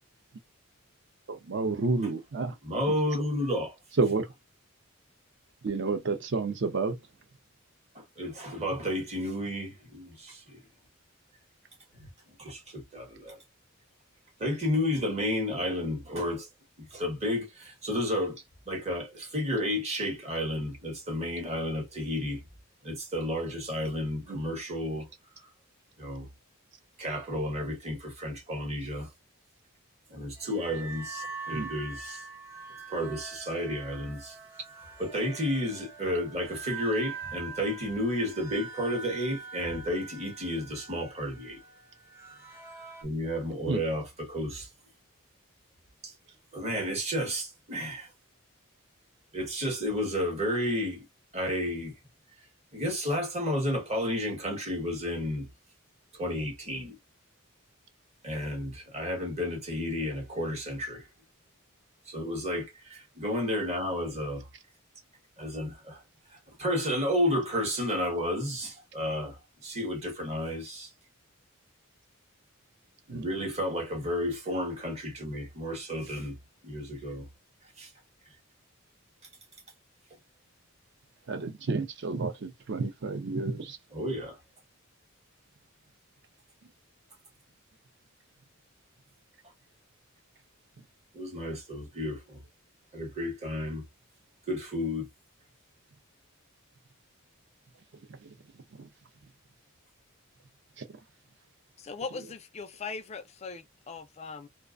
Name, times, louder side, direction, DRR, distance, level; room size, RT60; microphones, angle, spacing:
voice 1, 1.3-2.5 4.0-4.3 5.6-7.0 15.6-15.7 24.3-24.4 31.5-31.7 43.7-43.8 73.1-73.3 81.3-83.8 98.2-98.3 98.8-98.9 100.8-100.9, right 3 dB, 55° right, 0.6 m, -30 dB
voice 2, 2.6-3.7 7.9-10.6 11.9-12.1 12.4-13.4 14.4-16.5 16.8-22.4 22.8-25.1 26.0-26.3 27.0-29.1 30.1-32.2 32.9-34.4 35.0-41.6 43.0-44.7 46.0-46.1 46.5-48.1 49.3-51.0 51.3-51.9 52.7-55.5 56.2-57.0 58.2-61.1 62.1-64.5 65.4-66.0 66.3-70.9 73.1-76.3 76.6-77.3 77.8-77.9 83.9-84.4 91.1-92.4 92.9-93.8 94.5-95.1, left 1 dB, 30° right, 0.9 m, -32 dB
sound 1, 30.4-43.0, right 4 dB, 10° right, 0.6 m, -43 dB
voice 3, 101.8-104.5, left 4 dB, 30° left, 0.3 m, -40 dB
2.4 x 2.2 x 2.3 m
head